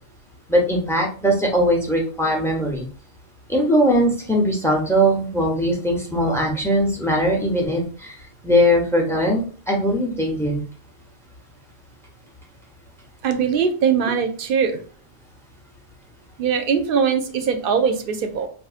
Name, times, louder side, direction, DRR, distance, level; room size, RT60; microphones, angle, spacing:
voice 1, 0.5-2.9 3.5-8.1 8.4-10.6, equal, 5° left, 0 dB, 0.7 m, -20 dB
voice 2, 13.2-14.8 16.4-18.5, right 6 dB, 60° right, 7 dB, 0.7 m, -21 dB
4.1 x 2.5 x 2.4 m, 0.41 s
omnidirectional pair, 1.1 m